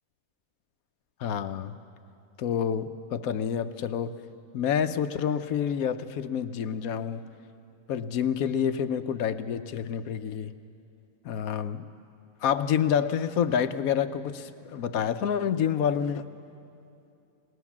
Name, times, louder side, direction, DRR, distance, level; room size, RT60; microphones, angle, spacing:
voice 1, 1.2-1.8 2.4-4.2 4.5-7.2 7.9-10.5 11.2-11.9 12.4-16.3, left 8 dB, 90° left, 11 dB, 1.2 m, -28 dB
21.5 x 19.0 x 7.2 m, 2.7 s
omnidirectional pair, 1.4 m